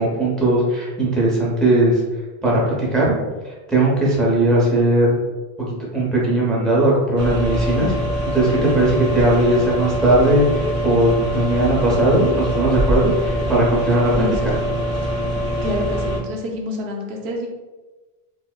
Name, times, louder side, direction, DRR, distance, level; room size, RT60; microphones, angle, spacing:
voice 1, 0.0-2.0 2.4-3.1 3.7-5.2 5.6-7.9 8.3-14.5, right 1 dB, ahead, -5 dB, 0.6 m, -18 dB
sound 1, 7.2-16.2, equal, 45° right, 0.8 m, -23 dB
voice 2, 15.6-17.5, left 1 dB, 85° right, 0 dB, 0.9 m, -27 dB
4.5 x 2.0 x 2.2 m, 1.2 s
omnidirectional pair, 1.0 m